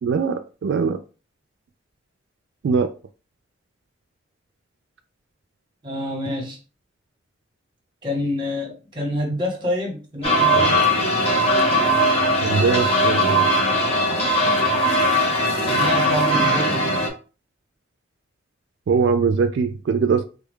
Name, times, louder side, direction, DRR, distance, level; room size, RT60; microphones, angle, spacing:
voice 1, 0.0-1.0 2.6-2.9 12.4-13.5 18.9-20.2, right 5 dB, 70° right, 0.3 m, -21 dB
voice 2, 5.8-6.6 8.0-10.8 15.6-16.9, left 1 dB, 25° right, 1.0 m, -27 dB
sound 1, 10.2-17.1, equal, 30° left, 0.9 m, -19 dB
3.3 x 2.3 x 3.6 m
head